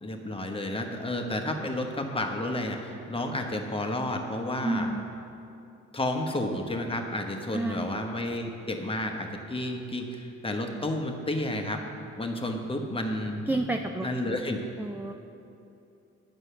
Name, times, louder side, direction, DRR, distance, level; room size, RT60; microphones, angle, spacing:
voice 1, 0.0-4.9 5.9-11.8 12.2-13.5 14.0-14.6, left 1 dB, 20° left, 3 dB, 1.1 m, -31 dB
voice 2, 4.6-5.1 7.5-7.9 13.5-14.4 14.8-15.1, right 2 dB, 5° right, 4 dB, 0.4 m, -30 dB
9.6 x 6.2 x 6.8 m, 2.7 s
cardioid pair, 90°, 30 cm